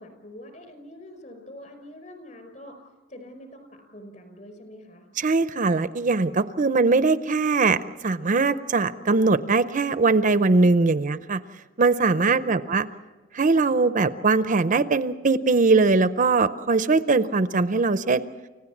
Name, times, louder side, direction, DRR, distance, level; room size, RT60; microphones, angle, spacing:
voice 1, 0.0-2.8 3.1-5.1 12.1-12.7, equal, 40° left, 7 dB, 4.9 m, -45 dB
voice 2, 5.2-11.4 11.8-12.9 13.3-18.2, right 3 dB, 40° right, 13 dB, 0.6 m, -21 dB
29.5 x 16.0 x 7.3 m, 1.3 s
head